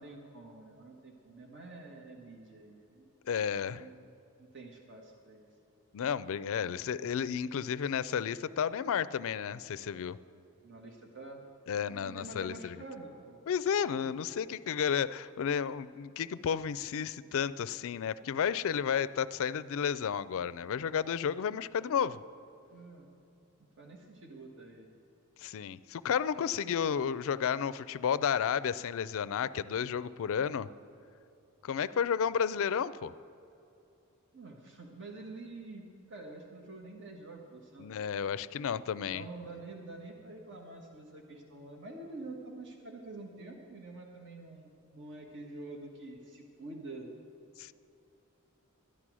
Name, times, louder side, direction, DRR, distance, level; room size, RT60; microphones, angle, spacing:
voice 1, 0.0-3.1 3.7-4.0 4.4-5.5 10.6-11.4 11.9-13.4 13.8-14.2 22.7-23.1 23.8-24.9 34.3-38.0 39.1-47.1, right 2 dB, 55° right, 1 dB, 1.4 m, -47 dB
voice 2, 3.3-3.9 5.9-10.2 11.7-12.8 13.5-22.2 25.4-30.7 31.6-33.1 37.8-39.2 47.6-47.7, left 7 dB, 65° left, 16 dB, 0.4 m, -32 dB
13.0 x 9.9 x 6.1 m, 2.7 s
head